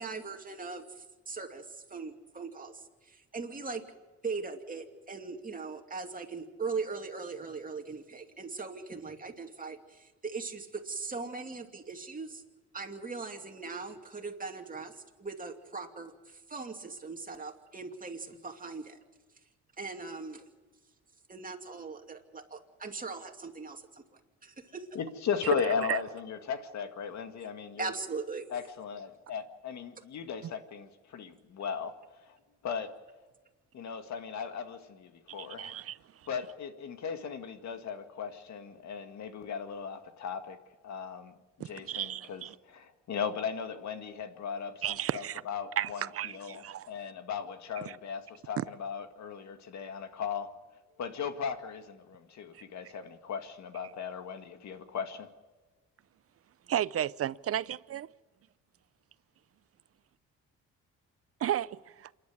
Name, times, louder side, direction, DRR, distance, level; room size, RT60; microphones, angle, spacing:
voice 1, 0.0-3.8 4.2-12.4 12.7-19.0 19.8-20.4 21.3-24.9 27.8-28.5, right 4 dB, 30° right, 2.6 m, -40 dB
voice 2, 24.9-27.9 28.5-31.9 32.2-32.4 32.6-32.9 33.7-35.7 36.3-40.6 40.8-50.5 51.0-55.3, left 7 dB, 65° left, 2.0 m, -37 dB
voice 3, 35.3-36.0 41.9-42.5 44.8-45.4 45.8-46.9 48.6-48.7 52.5-52.6 56.7-58.1 61.4-62.1, right 11 dB, 50° right, 0.6 m, -33 dB
27.5 x 11.0 x 9.6 m
cardioid pair, 90°, 30 cm